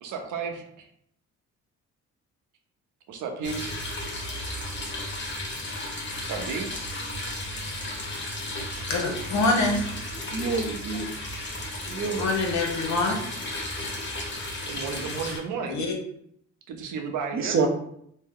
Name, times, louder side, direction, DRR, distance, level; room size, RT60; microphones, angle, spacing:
voice 1, 0.0-0.9 3.1-3.7 6.2-6.7 14.6-15.8 16.7-17.6, right 5 dB, 80° right, 4 dB, 0.7 m, -33 dB
sound 1, 3.4-15.4, left 1 dB, 40° left, 1.0 m, -34 dB
voice 2, 8.9-9.8 12.0-13.2 15.7-15.9, left 2 dB, 65° left, 2 dB, 0.8 m, -25 dB
voice 3, 10.3-11.1 11.9-12.3 17.3-17.7, right 5 dB, 45° right, 3 dB, 0.6 m, -27 dB
2.7 x 2.1 x 3.6 m, 0.70 s
cardioid pair, 90°, 30 cm